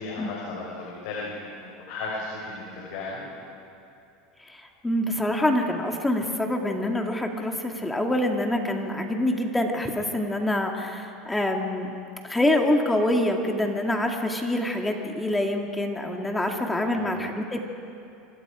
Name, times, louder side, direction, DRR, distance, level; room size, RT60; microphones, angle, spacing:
voice 1, 0.0-1.3 1.6-3.2 16.7-17.1, left 3 dB, 75° left, -4 dB, 5.1 m, -35 dB
voice 2, 4.4-11.9 12.2-17.7, left 1 dB, 10° left, 2 dB, 2.2 m, -26 dB
26.0 x 24.0 x 5.0 m, 2.7 s
supercardioid pair, 115°, 0 cm